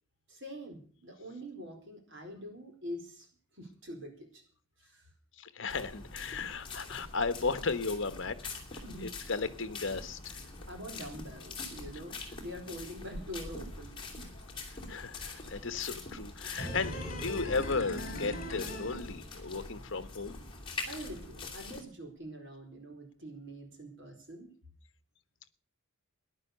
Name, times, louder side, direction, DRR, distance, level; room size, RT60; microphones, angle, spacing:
voice 1, 0.3-3.3 3.5-4.4 4.8-5.0 8.8-9.1 10.7-14.3 20.9-24.5, equal, 55° right, 4.5 m, -45 dB
voice 2, 5.3-10.5 14.7-20.4, left 4 dB, 55° left, 1.1 m, -35 dB
sound 1, 5.7-21.8, left 3 dB, 20° left, 2.8 m, -44 dB
sound 2, 16.6-19.7 20.0-20.1, equal, 40° left, 3.2 m, -39 dB
15.0 x 11.0 x 6.7 m
head